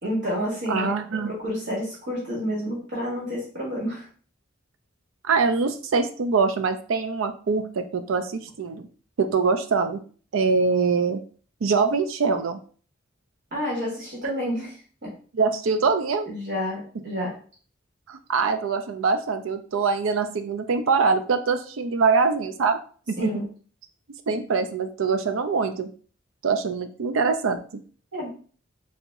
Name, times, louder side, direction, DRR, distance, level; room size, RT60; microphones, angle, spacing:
voice 1, 0.0-4.1 13.5-14.7 15.0-15.1 16.3-17.4 23.2-23.5 28.1-28.3, equal, 60° right, -5 dB, 1.5 m, -29 dB
voice 2, 0.7-1.3 5.2-8.9 9.2-10.0 10.3-11.2 11.6-12.6 15.3-16.3 18.1-22.8 23.1-23.4 24.3-25.9 26.4-27.6, right 4 dB, 85° right, 8 dB, 0.4 m, -23 dB
3.8 x 2.1 x 3.5 m, 0.41 s
head